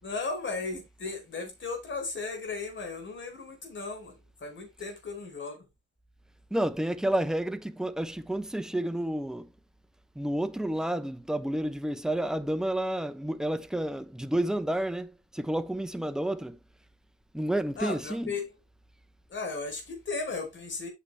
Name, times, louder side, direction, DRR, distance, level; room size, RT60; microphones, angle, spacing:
voice 1, 0.0-5.7 17.8-18.5 19.3-20.9, left 4 dB, 40° left, 4.7 m, -36 dB
voice 2, 6.5-9.5 10.2-16.6 17.3-18.3, right 1 dB, ahead, 0.8 m, -30 dB
8.6 x 6.7 x 3.3 m
cardioid pair, 95°, 29 cm